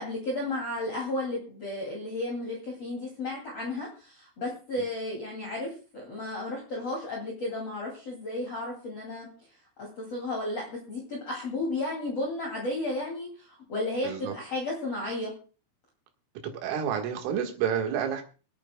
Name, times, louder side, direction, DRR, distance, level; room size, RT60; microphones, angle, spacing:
voice 1, 0.0-9.3 9.8-15.3, left 2 dB, 40° left, -2 dB, 2.8 m, -33 dB
voice 2, 14.0-14.3 16.4-18.2, right 8 dB, 75° right, 3 dB, 4.1 m, -29 dB
25.5 x 9.0 x 2.3 m, 0.36 s
omnidirectional pair, 5.8 m